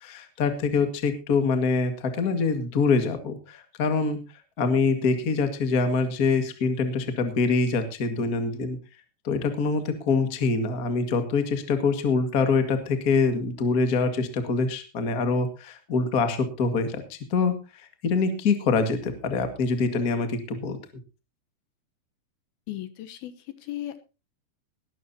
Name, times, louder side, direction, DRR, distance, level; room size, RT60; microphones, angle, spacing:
voice 1, 0.0-4.2 4.6-8.8 9.2-17.6 18.0-20.8, left 4 dB, 40° left, 8 dB, 1.3 m, -25 dB
voice 2, 22.7-24.0, left 13 dB, 75° left, 10 dB, 2.7 m, -36 dB
19.5 x 12.5 x 2.8 m, 0.30 s
omnidirectional pair, 4.8 m